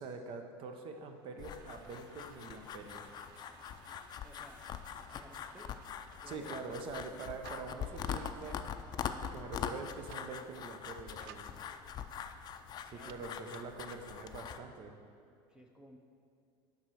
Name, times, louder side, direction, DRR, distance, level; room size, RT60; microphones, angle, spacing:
voice 1, 0.0-3.1 6.2-8.7 9.2-11.6 12.8-15.0, right 4 dB, 50° right, 5 dB, 0.9 m, -45 dB
sound 1, 1.0-13.9, right 9 dB, 85° right, 0.4 m, -61 dB
sound 2, 1.4-14.6, left 8 dB, 35° left, 0.4 m, -43 dB
voice 2, 4.2-4.6 5.1-5.7 6.2-6.5 11.5-11.7 12.9-13.2 15.5-16.0, right 1 dB, 5° right, 1 dB, 0.6 m, -56 dB
7.3 x 5.5 x 6.3 m, 2.4 s
supercardioid pair, 115°, 11 cm